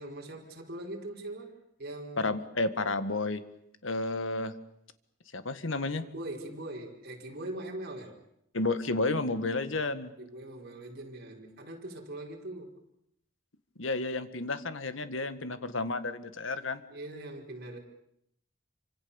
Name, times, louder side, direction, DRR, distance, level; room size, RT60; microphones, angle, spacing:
voice 1, 0.0-2.3 6.0-8.2 10.2-12.8 16.9-17.8, right 1 dB, 55° right, 0 dB, 5.2 m, -41 dB
voice 2, 2.2-3.4 3.8-4.5 5.3-6.0 8.5-10.1 13.8-16.8, left 2 dB, 75° left, 11 dB, 1.8 m, -31 dB
28.0 x 25.5 x 7.2 m, 0.75 s
head